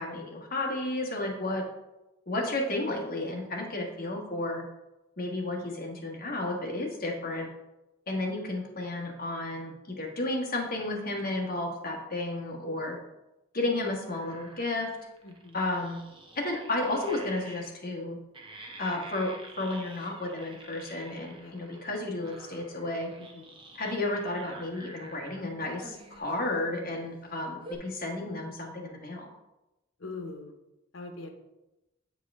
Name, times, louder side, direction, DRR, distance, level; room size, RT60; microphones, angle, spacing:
voice 1, 0.0-1.6 2.3-4.6 5.2-7.5 8.1-13.0 13.5-14.9 15.5-16.0 16.3-18.2 18.8-23.1 23.7-29.3, left 2 dB, 50° left, -1 dB, 1.5 m, -32 dB
sound 1, 14.1-17.7 18.3-21.9 22.2-25.4 25.8-26.6 27.1-27.2 27.6-27.8, right 2 dB, 25° right, 0.9 m, -49 dB
voice 2, 15.2-15.6 21.3-21.5 23.2-23.5 30.0-30.5 30.9-31.3, left 3 dB, 85° left, 5 dB, 0.9 m, -42 dB
8.0 x 4.8 x 3.6 m, 0.98 s
head